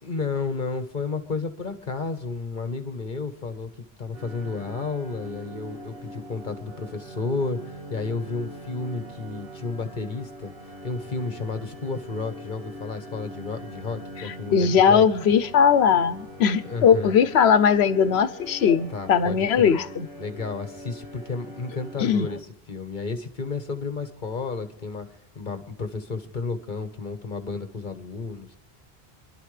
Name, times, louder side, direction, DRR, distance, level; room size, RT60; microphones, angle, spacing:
voice 1, 0.0-3.7 4.0-15.1 16.6-17.1 18.9-19.8 20.2-28.6, left 4 dB, 50° left, 8 dB, 1.3 m, -32 dB
sound 1, 4.1-22.4, equal, 65° right, 2.4 m, -42 dB
voice 2, 14.5-20.1 22.0-22.3, left 7 dB, 90° left, 13 dB, 1.0 m, -19 dB
28.0 x 11.5 x 3.3 m, 0.83 s
omnidirectional pair, 1.0 m